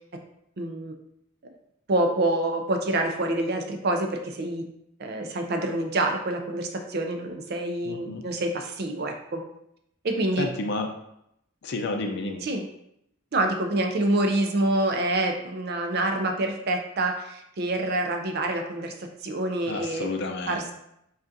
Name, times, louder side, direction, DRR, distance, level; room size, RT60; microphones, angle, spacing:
voice 1, 0.6-0.9 1.9-4.6 5.0-9.4 10.0-10.5 12.4-12.7 13.3-18.9 19.2-20.1 20.5-20.7, right 1 dB, 45° right, 4 dB, 0.4 m, -26 dB
voice 2, 7.8-8.2 10.4-10.9 11.6-12.5 19.7-20.7, left 3 dB, 50° left, 3 dB, 0.4 m, -31 dB
5.1 x 2.4 x 2.6 m, 0.77 s
head